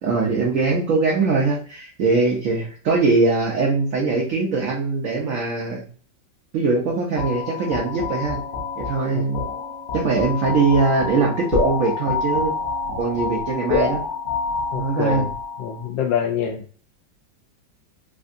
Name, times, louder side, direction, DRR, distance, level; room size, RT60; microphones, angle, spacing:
voice 1, 0.0-5.9 6.5-8.4 8.8-9.5 9.9-12.5 13.0-14.0 14.7-15.3, right 3 dB, 70° right, -1 dB, 0.8 m, -21 dB
sound 1, 7.2-15.9, left 4 dB, 55° left, 1.1 m, -27 dB
voice 2, 14.7-15.3 15.6-16.6, left 7 dB, 80° left, 4 dB, 1.3 m, -25 dB
3.3 x 2.6 x 2.5 m, 0.43 s
omnidirectional pair, 2.0 m